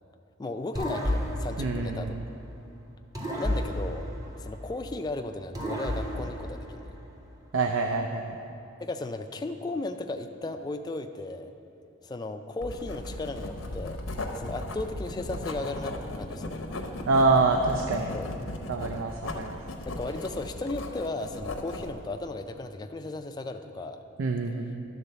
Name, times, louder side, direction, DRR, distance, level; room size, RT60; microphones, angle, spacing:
voice 1, 0.4-2.2 3.4-4.1 4.4-6.9 8.8-11.5 12.0-14.0 14.3-16.6 18.1-18.3 19.3-24.0, left 2 dB, 20° left, 6 dB, 0.3 m, -35 dB
sound 1, 0.8-2.6 3.2-5.0 5.5-7.3, equal, 20° right, 0.8 m, -32 dB
voice 2, 1.6-2.3 7.5-8.4 17.1-18.2 18.7-19.6 24.2-24.8, right 3 dB, 80° right, 4 dB, 0.4 m, -26 dB
Writing, 12.6-21.9, left 2 dB, 80° left, 0.7 m, -37 dB
11.0 x 4.0 x 6.7 m, 2.6 s
head